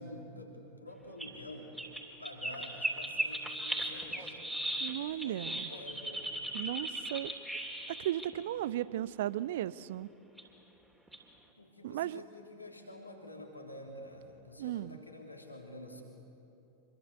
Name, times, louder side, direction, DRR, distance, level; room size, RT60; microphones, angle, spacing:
voice 1, 0.0-1.7 2.2-4.5 5.2-6.4 11.6-16.0, left 1 dB, 85° left, 0 dB, 3.4 m, -48 dB
sound 1, 1.2-1.4 1.8-8.3 9.7-9.8 10.4-10.5 11.1-11.2, right 1 dB, 5° right, 3.2 m, -37 dB
voice 2, 4.8-5.6 6.5-7.3 8.0-10.1 11.8-12.2 14.6-15.0, right 13 dB, 55° right, 19 dB, 0.6 m, -35 dB
26.0 x 23.0 x 8.2 m, 2.8 s
figure-of-eight pair, 90°, 0 cm